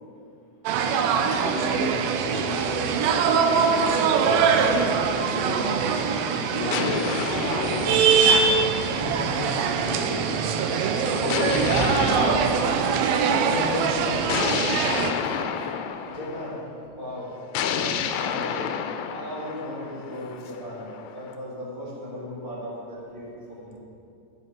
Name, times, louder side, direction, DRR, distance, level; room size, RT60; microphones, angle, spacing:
sound 1, 0.7-15.1, right 6 dB, 80° right, 2.2 m, -23 dB
voice 1, 1.2-2.0 2.3-2.9 3.2-5.0 5.3-5.9 6.4-7.0 7.6-8.7 8.9-10.3 11.0-12.5 13.2-14.6 15.2-15.4, left 3 dB, 65° left, 2 dB, 2.5 m, -34 dB
sound 2, 4.8-5.9 6.7-9.3 11.3-13.4 14.3-16.6 17.5-21.3, left 8 dB, 85° left, 2.8 m, -30 dB
sound 3, 8.2-14.9, right 1 dB, 65° right, 3.6 m, -42 dB
voice 2, 16.1-18.7 19.1-20.9 21.1-23.8, left 1 dB, 10° left, -9 dB, 2.0 m, -37 dB
13.0 x 8.2 x 5.3 m, 2.6 s
omnidirectional pair, 5.0 m